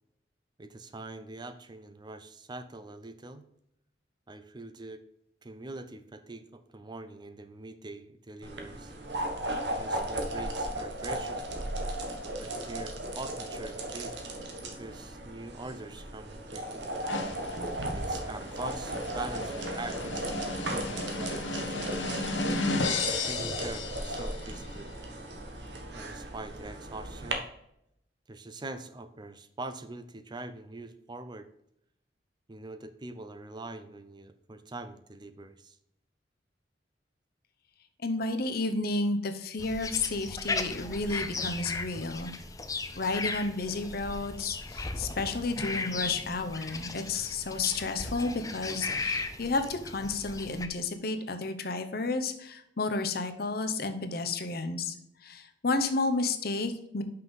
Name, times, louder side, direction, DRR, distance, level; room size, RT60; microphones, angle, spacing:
voice 1, 0.6-3.4 4.3-5.0 5.4-8.9 9.7-11.5 12.4-14.2 14.7-16.9 17.9-22.2 23.0-24.9 25.9-27.4 28.3-31.5 32.5-35.8, right 2 dB, 25° right, 10 dB, 0.5 m, -43 dB
sound 1, 8.4-27.3, right 1 dB, 70° right, 1.3 m, -36 dB
sound 2, 17.1-24.7, left 3 dB, 85° left, 1.2 m, -34 dB
voice 2, 38.0-42.3 43.0-54.9 55.2-57.0, left 3 dB, 55° left, 7 dB, 0.9 m, -31 dB
sound 3, 39.6-50.7, left 3 dB, 20° left, 0.6 m, -36 dB
5.8 x 5.7 x 5.3 m, 0.76 s
head